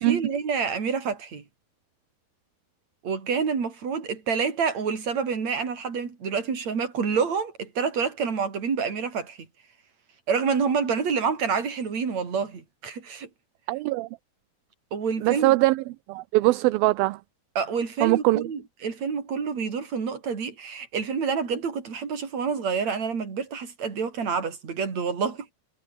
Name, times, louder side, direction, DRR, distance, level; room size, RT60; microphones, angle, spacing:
voice 1, 0.0-1.4 3.0-9.4 10.3-13.3 14.9-15.5 17.5-25.5, right 6 dB, 50° right, 5.1 m, -28 dB
voice 2, 13.7-14.1 15.2-15.8 16.1-17.2 18.0-18.5, right 19 dB, 80° right, 2.5 m, -22 dB
omnidirectional pair, 4.2 m